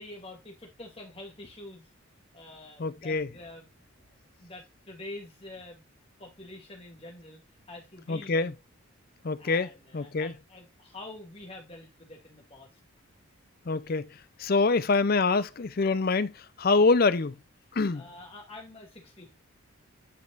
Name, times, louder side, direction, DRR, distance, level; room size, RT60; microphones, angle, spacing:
voice 1, 0.0-1.8 2.3-3.7 4.0-5.8 6.2-7.4 7.7-8.6 9.4-12.8 13.7-14.0 14.5-14.9 16.8-17.0 17.9-19.3, left 2 dB, 25° left, 2.5 m, -46 dB
voice 2, 2.8-3.3 8.1-8.5 9.2-10.3 13.7-14.1 14.4-17.3 17.7-18.0, left 3 dB, 45° left, 0.5 m, -25 dB
9.7 x 5.2 x 2.5 m
head